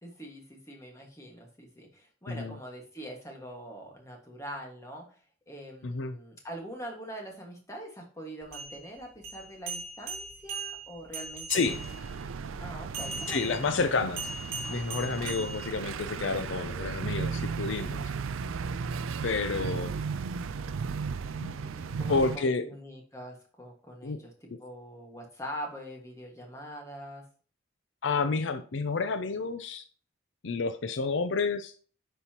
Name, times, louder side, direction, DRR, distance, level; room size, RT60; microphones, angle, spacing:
voice 1, 0.0-5.2 5.5-11.8 12.6-13.8 15.2-15.4 19.3-20.2 21.5-27.2, equal, 15° left, 1 dB, 1.7 m, -43 dB
voice 2, 5.8-6.2 11.5-11.8 13.3-14.2 14.7-18.0 19.2-19.9 21.4-21.5 21.9-22.6 24.0-24.2 28.0-29.8 30.4-31.7, left 4 dB, 70° left, 10 dB, 0.5 m, -30 dB
sound 1, 8.4-12.1 12.9-16.1, right 3 dB, 45° right, 3.8 m, -39 dB
sound 2, 11.6-22.4, right 5 dB, 85° right, 0.4 m, -35 dB
9.8 x 5.5 x 2.9 m, 0.42 s
head